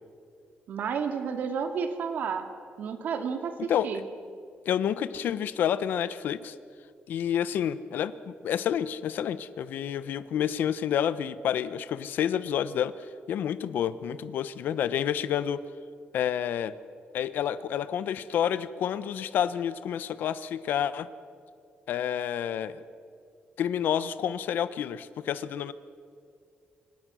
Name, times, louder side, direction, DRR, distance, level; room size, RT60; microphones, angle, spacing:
voice 1, 0.7-2.5 2.8-4.1, right 6 dB, 60° right, 6 dB, 2.3 m, -31 dB
voice 2, 4.7-6.5 7.1-12.9 13.3-15.6 16.1-16.7 17.1-21.1 21.9-22.8 23.6-25.7, left 9 dB, 65° left, 15 dB, 0.9 m, -29 dB
27.0 x 25.5 x 6.3 m, 2.4 s
cardioid pair, 175°, 3 cm